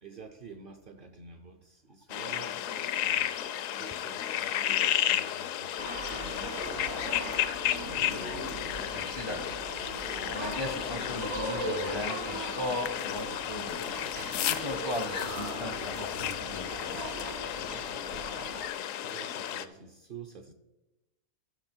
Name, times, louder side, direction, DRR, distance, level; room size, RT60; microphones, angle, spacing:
voice 1, 0.0-3.3 3.8-7.2 18.6-20.5, right 5 dB, 50° right, 5 dB, 0.6 m, -49 dB
sound 1, 2.1-19.7, left 11 dB, 75° left, 0.9 m, -33 dB
sound 2, 5.8-18.7, right 1 dB, 70° right, 2.0 m, -39 dB
voice 2, 8.9-9.6 10.3-14.0 14.5-17.3 17.5-17.8, left 1 dB, 35° left, 6 dB, 0.5 m, -38 dB
14.5 x 6.1 x 4.4 m, 1.0 s
omnidirectional pair, 1.5 m